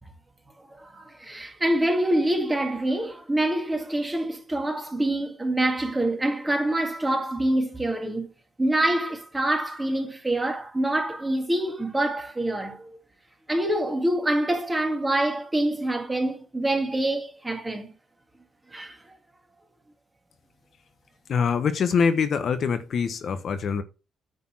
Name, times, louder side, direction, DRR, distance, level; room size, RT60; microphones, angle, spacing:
voice 1, 0.7-8.3 8.6-12.9 13.5-17.9 18.7-19.0, right 1 dB, 15° right, 2.0 m, -26 dB
voice 2, 21.3-23.8, left 6 dB, 55° left, 1.0 m, -24 dB
9.6 x 4.2 x 6.0 m
cardioid pair, 90°, 0 cm